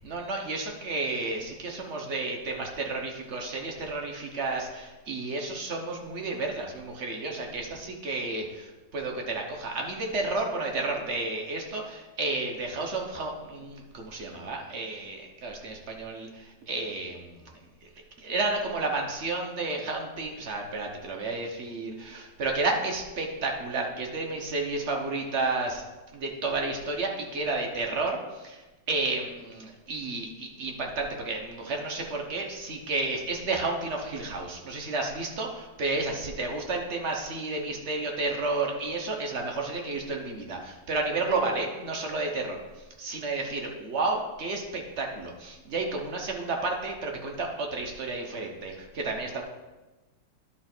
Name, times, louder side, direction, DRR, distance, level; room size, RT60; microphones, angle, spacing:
voice 1, 0.0-17.5 18.2-25.8 26.1-28.6 28.9-42.6 43.0-49.4, right 3 dB, 45° right, 1 dB, 1.0 m, -31 dB
11.0 x 4.4 x 4.4 m, 1.1 s
omnidirectional pair, 2.2 m